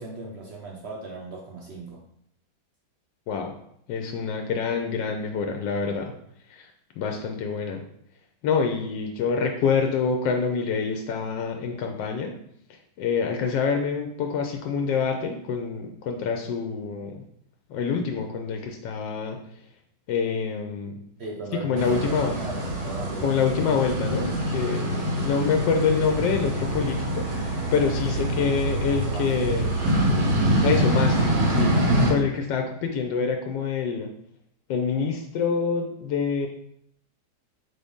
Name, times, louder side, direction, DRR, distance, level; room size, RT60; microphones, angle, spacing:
voice 1, 0.0-2.0 21.2-23.6 28.1-28.5 28.9-29.3, right 3 dB, 70° right, -2 dB, 0.6 m, -38 dB
voice 2, 3.9-6.1 6.4-6.7 7.0-7.8 8.4-12.4 12.7-17.2 17.7-19.6 20.1-21.0 21.6-22.3 23.2-29.8 30.6-34.1 34.7-36.5, left 5 dB, 85° left, 3 dB, 1.2 m, -26 dB
sound 1, 21.8-32.1, right 1 dB, 85° right, 1.8 m, -25 dB
4.0 x 3.7 x 3.5 m, 0.72 s
omnidirectional pair, 1.9 m